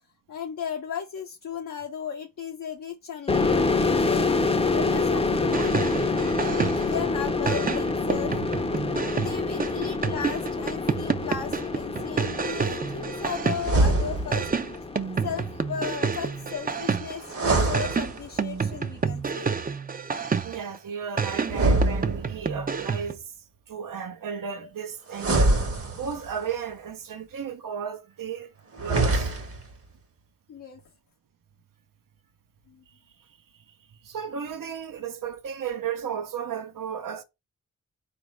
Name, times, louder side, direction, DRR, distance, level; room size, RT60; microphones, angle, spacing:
voice 1, 0.3-4.2 4.7-5.8 6.9-8.4 9.1-14.5 15.2-19.6 30.5-30.8 32.7-32.8, left 7 dB, 70° left, 0.6 m, -35 dB
sound 1, 3.3-16.7, left 3 dB, 20° left, 0.5 m, -27 dB
sound 2, 5.4-7.0 7.5-13.9 14.3-17.3 17.7-20.8 21.2-23.2, right 5 dB, 30° right, 0.4 m, -29 dB
sound 3, 13.6-14.5 17.2-18.6 21.4-22.6 25.1-26.4 28.7-29.7, right 2 dB, 45° right, 1.0 m, -24 dB
voice 2, 20.4-23.3 23.7-25.6 25.9-28.5 28.8-29.3 34.0-37.2, right 7 dB, 80° right, 0.7 m, -34 dB
4.0 x 2.5 x 3.1 m
cardioid pair, 50°, 33 cm